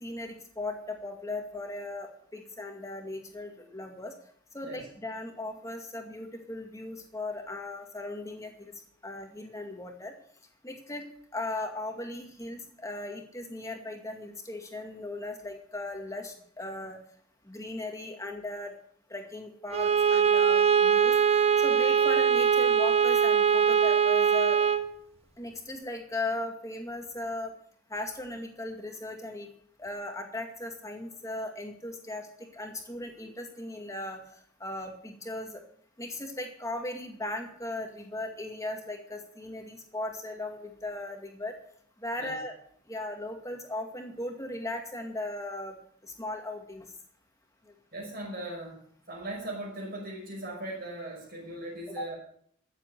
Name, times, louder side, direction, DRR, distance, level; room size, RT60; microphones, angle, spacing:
voice 1, 0.0-4.1 4.5-8.7 9.0-10.1 10.6-11.0 11.3-17.0 17.5-18.7 19.1-21.2 21.6-24.6 25.4-27.5 27.9-29.5 29.8-34.2 34.6-35.6 36.0-41.6 42.0-42.5 42.9-45.8 46.0-46.9 52.0-52.1, left 2 dB, 15° left, 3 dB, 2.1 m, -37 dB
Bowed string instrument, 19.7-24.9, right 7 dB, 30° right, 0.7 m, -22 dB
voice 2, 47.9-48.8 49.1-52.1, right 1 dB, 50° right, -2 dB, 5.6 m, -39 dB
14.0 x 7.6 x 7.8 m, 0.62 s
head